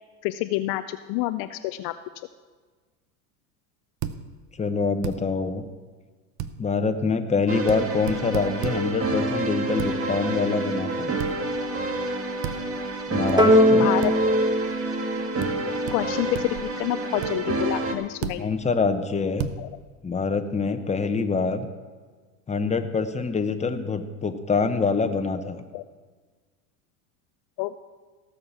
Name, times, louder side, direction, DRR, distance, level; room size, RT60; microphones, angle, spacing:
voice 1, 0.2-1.9 13.8-14.1 15.9-18.5 19.6-19.7 25.7-25.8 27.6-27.8, left 16 dB, 55° left, 11 dB, 0.6 m, -28 dB
sound 1, 4.0-4.2 5.0-5.2 6.4-6.5 7.7-7.8 8.1-8.8 9.8-9.9 11.2-11.4 12.4-12.6 13.3-13.4 14.0-14.1 15.4-15.5 15.9-16.0 16.3-16.7 17.2-17.3 18.2-18.4 19.4-19.6, right 10 dB, 50° right, 0.9 m, -31 dB
voice 2, 4.6-5.6 6.6-11.1 13.1-13.9 18.4-19.5 20.0-21.7 22.5-25.6, left 4 dB, 15° left, 7 dB, 1.0 m, -25 dB
sound 2, 7.5-17.9, right 2 dB, 30° right, 1.6 m, -28 dB
sound 3, 13.4-16.0, equal, 10° right, 1.1 m, -20 dB
17.5 x 6.7 x 5.7 m, 1.4 s
hypercardioid pair, 90°, 45 cm